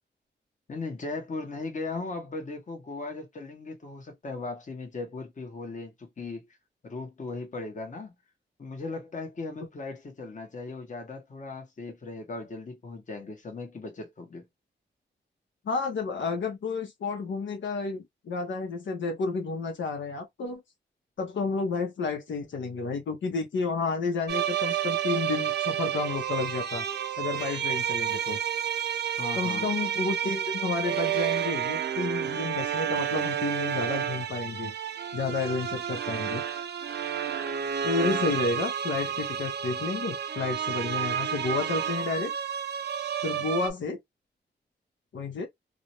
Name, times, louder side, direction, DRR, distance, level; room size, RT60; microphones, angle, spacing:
voice 1, 0.7-6.5 6.8-8.2 8.6-14.5 29.0-29.7, left 3 dB, 40° left, 0.9 m, -38 dB
voice 2, 15.6-20.6 21.2-26.9 27.2-28.4 29.3-34.7 35.1-36.4 37.8-42.3 43.2-44.0 45.1-45.5, left 4 dB, 85° left, 0.7 m, -31 dB
sound 1, 24.3-43.7, right 9 dB, 65° right, 0.4 m, -30 dB
2.4 x 2.1 x 2.8 m
wide cardioid pair, 110°, 19 cm